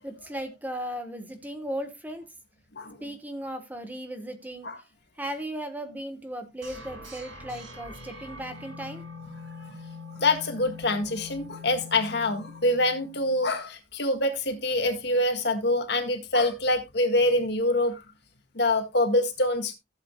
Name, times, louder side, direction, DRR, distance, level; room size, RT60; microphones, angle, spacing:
voice 1, 0.0-2.2 3.0-4.7 5.2-9.0, right 1 dB, 10° right, 1.2 m, -36 dB
sound 1, 6.6-13.5, left 3 dB, 85° right, 5.8 m, -43 dB
voice 2, 10.2-18.0 18.5-19.7, left 2 dB, 60° left, 1.8 m, -25 dB
15.5 x 7.8 x 2.3 m
head